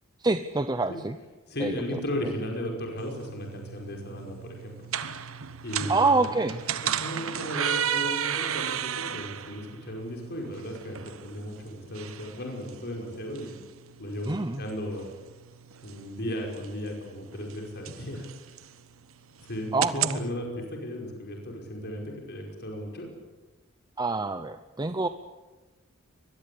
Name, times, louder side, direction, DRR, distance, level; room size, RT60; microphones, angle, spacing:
voice 1, 0.2-1.2 1.6-2.3 5.9-6.6 14.2-14.6 19.7-20.2 24.0-25.1, right 3 dB, 20° right, 10 dB, 0.8 m, -27 dB
voice 2, 1.5-4.7 5.6-6.3 6.8-13.5 14.0-15.1 15.8-18.3 19.4-19.7 19.9-23.1, left 1 dB, 50° left, 1 dB, 5.3 m, -35 dB
sound 1, 3.0-20.2, right 9 dB, 70° right, 1.2 m, -35 dB
24.0 x 21.0 x 8.5 m, 1.2 s
head